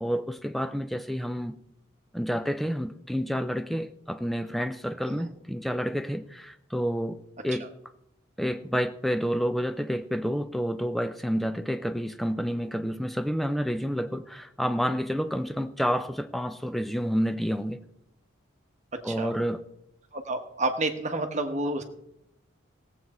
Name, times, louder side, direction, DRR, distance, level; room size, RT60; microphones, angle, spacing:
voice 1, 0.0-1.6 2.1-7.7 8.4-17.8 19.0-19.6, equal, ahead, 0.4 m, -29 dB
voice 2, 20.1-21.8, right 2 dB, 35° right, 1.2 m, -29 dB
17.0 x 8.0 x 4.3 m
head